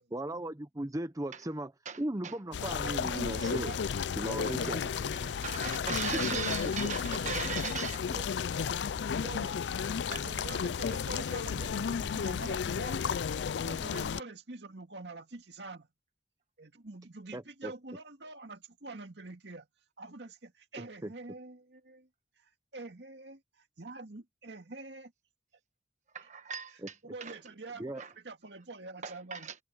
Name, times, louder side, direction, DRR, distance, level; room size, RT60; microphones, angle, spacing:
voice 1, 0.1-1.7 2.0-3.7 4.2-4.8 6.1-6.2 17.3-17.7 21.0-21.1 26.8-26.9 27.8-28.0, right 1 dB, 20° right, 0.7 m, -36 dB
voice 2, 1.8-2.3 4.2-4.3 5.0-8.0 10.1-10.3 26.1-27.4 28.0-28.1 29.0-29.6, right 7 dB, 45° right, 1.3 m, -39 dB
sound 1, 2.5-14.2, left 7 dB, 80° left, 0.4 m, -33 dB
voice 3, 2.8-3.8 4.3-4.8 6.0-6.5 7.1-8.3 9.1-9.6 10.1-13.2 13.6-15.9 16.6-19.7 20.0-22.1 22.4-25.1 27.0-29.5, right 3 dB, 80° right, 2.1 m, -45 dB
head